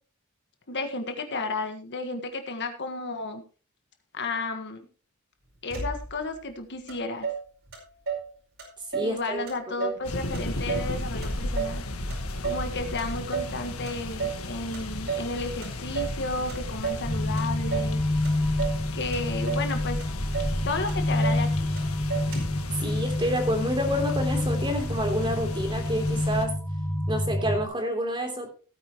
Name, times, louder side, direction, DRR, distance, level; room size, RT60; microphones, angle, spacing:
voice 1, 0.7-3.4 4.1-4.8 5.6-7.3 9.0-11.8 12.4-18.0 18.9-20.0 20.7-21.7, left 3 dB, 55° left, 6 dB, 1.6 m, -33 dB
Motor vehicle (road), 5.7-6.4 6.9-7.0 7.2-8.3 8.6-9.2 9.5-10.1 10.3-11.8 12.1-12.7 13.0-13.6 13.9-14.4 14.7-15.3 15.6-16.2 16.5-17.1 17.4-18.0 18.2-18.8 19.1-19.7 20.0-20.1 20.3-20.6 20.9-21.5 21.8-21.9 22.1-22.6, right 6 dB, 60° right, 5.1 m, -33 dB
voice 2, 8.9-10.0 12.9-13.0 22.8-26.6 27.1-28.5, equal, 20° right, 3 dB, 3.4 m, -29 dB
sound 1, 10.0-26.5, left 1 dB, 80° left, 1.7 m, -34 dB
sound 2, 17.0-27.6, left 1 dB, 10° left, 1.6 m, -28 dB
17.0 x 9.4 x 3.1 m, 0.36 s
head